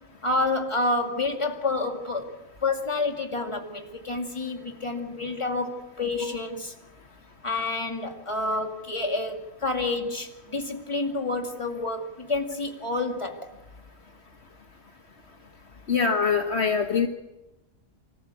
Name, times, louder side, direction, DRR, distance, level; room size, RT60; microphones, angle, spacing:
voice 1, 0.2-2.3 2.6-6.7 7.4-13.5, left 2 dB, 25° left, 3 dB, 2.3 m, -29 dB
voice 2, 15.9-17.1, left 5 dB, 55° left, 4 dB, 1.5 m, -23 dB
25.5 x 14.5 x 8.4 m, 1.0 s
omnidirectional pair, 1.3 m